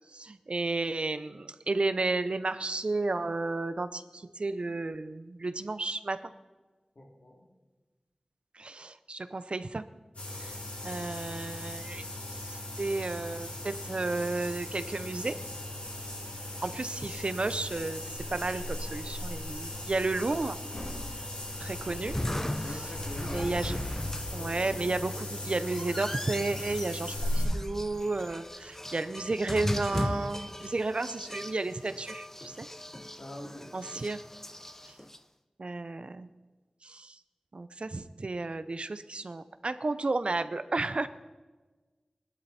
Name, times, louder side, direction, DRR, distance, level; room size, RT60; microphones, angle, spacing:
voice 1, 0.1-6.3 8.6-9.8 10.3-10.5 10.8-12.0 12.3-15.4 16.6-18.0 18.3-20.6 21.6-22.2 22.7-22.9 23.2-23.8 24.3-32.7 33.7-34.2 35.6-36.3 36.8-37.1 37.5-41.1, right 3 dB, 60° right, 12 dB, 0.6 m, -32 dB
voice 2, 6.9-7.4 22.6-23.5 24.3-25.2 33.2-33.8, left 1 dB, 70° left, 0 dB, 3.0 m, -45 dB
sound 1, 10.1-27.4, left 1 dB, 85° left, 6.3 m, -37 dB
sound 2, 20.9-35.2, left 1 dB, 20° left, 0.6 m, -39 dB
19.0 x 12.5 x 4.2 m, 1.3 s
wide cardioid pair, 65°, 2 cm